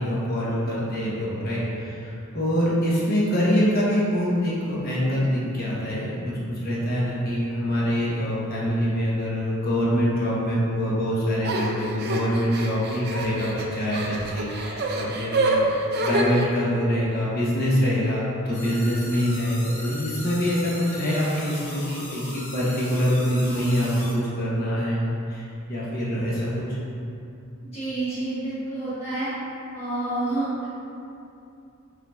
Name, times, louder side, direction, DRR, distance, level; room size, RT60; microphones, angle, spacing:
voice 1, 0.0-15.7 16.0-22.2 22.5-26.8, equal, 45° left, -7 dB, 0.9 m, -25 dB
sound 1, 11.4-16.5, right 2 dB, 50° right, 0.4 m, -27 dB
sound 2, 18.5-24.1, left 1 dB, 90° left, 1.3 m, -39 dB
voice 2, 27.6-29.3 29.7-30.7, right 2 dB, 30° left, -11 dB, 1.3 m, -29 dB
5.9 x 3.8 x 2.3 m, 2.6 s
head